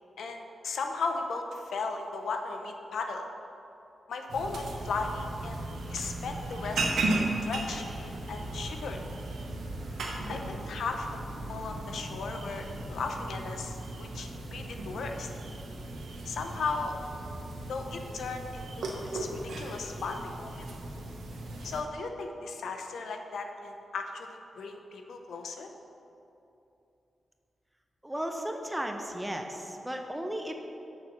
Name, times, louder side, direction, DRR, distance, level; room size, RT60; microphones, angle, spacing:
voice 1, 0.2-3.3 4.1-5.6 5.9-9.0 9.9-11.2 11.5-15.3 16.3-16.9 17.7-20.7 21.6-25.7, left 4 dB, 85° left, 4 dB, 0.6 m, -36 dB
sound 1, 4.3-21.8, right 2 dB, 90° right, 0.8 m, -36 dB
voice 2, 28.0-30.5, equal, 10° right, 4 dB, 0.6 m, -35 dB
6.5 x 4.2 x 5.9 m, 2.8 s
cardioid pair, 100°, 0 cm